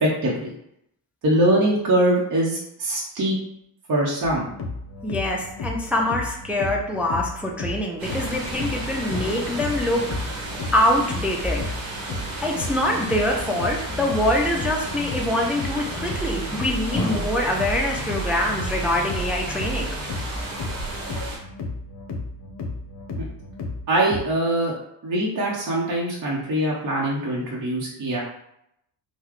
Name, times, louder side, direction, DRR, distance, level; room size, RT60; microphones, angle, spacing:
voice 1, 0.0-0.5 1.2-3.4 3.9-4.5 23.2-23.3 23.9-24.7 25.0-28.2, right 1 dB, 45° right, -4 dB, 0.8 m, -22 dB
sound 1, 4.2-24.2, left 1 dB, 55° left, 0.8 m, -33 dB
voice 2, 5.0-10.4 10.7-11.6 12.4-19.9, left 1 dB, 5° right, 0 dB, 0.3 m, -24 dB
sound 2, 8.0-21.4, right 2 dB, 85° right, 1.2 m, -33 dB
sound 3, 9.1-12.0 16.9-17.3, left 1 dB, 30° left, 1.3 m, -34 dB
3.7 x 2.2 x 3.1 m, 0.76 s
cardioid pair, 105°, 46 cm